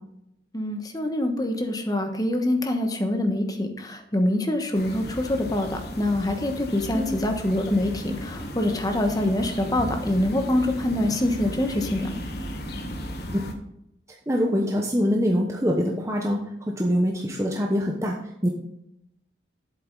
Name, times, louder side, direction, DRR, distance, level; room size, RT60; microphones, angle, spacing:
voice 1, 0.5-12.1, left 1 dB, 20° left, 4 dB, 1.2 m, -25 dB
sound 1, 4.7-13.5, equal, 55° left, 1.4 m, -35 dB
voice 2, 14.3-16.4 16.8-18.2 18.4-18.5, equal, 15° right, 0 dB, 0.9 m, -24 dB
8.2 x 7.7 x 4.0 m, 0.80 s
head